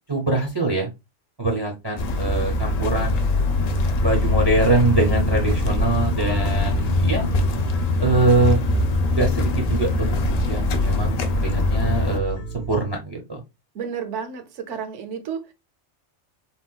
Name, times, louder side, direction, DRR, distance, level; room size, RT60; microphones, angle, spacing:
voice 1, 0.1-0.9 1.4-3.3 4.0-7.3 8.0-8.6 9.1-10.1 10.5-13.4, right 2 dB, 35° right, 0.4 m, -23 dB
sound 1, 2.0-12.2, left 2 dB, 75° left, 0.3 m, -22 dB
sound 2, 2.2-12.7, equal, 45° left, 0.9 m, -31 dB
voice 2, 13.7-15.5, right 7 dB, 80° right, 0.9 m, -31 dB
3.6 x 2.2 x 2.2 m
omnidirectional pair, 1.2 m